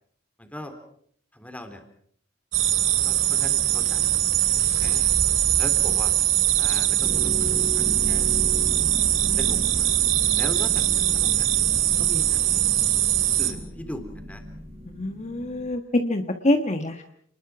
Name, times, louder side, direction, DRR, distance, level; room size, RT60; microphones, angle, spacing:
voice 1, 0.4-0.8 1.3-1.8 3.0-4.1 4.8-5.1 5.6-6.2 6.6-7.3 7.7-8.3 9.4-9.9 10.4-11.5 11.8-12.7 13.4-14.4, equal, 5° left, 7 dB, 3.5 m, -39 dB
sound 1, 2.5-13.5, right 12 dB, 85° right, 2.7 m, -22 dB
sound 2, 7.0-15.7, equal, 35° right, 5.1 m, -35 dB
voice 2, 14.8-17.0, left 1 dB, 35° left, 6 dB, 1.5 m, -25 dB
29.0 x 20.5 x 6.1 m, 0.65 s
head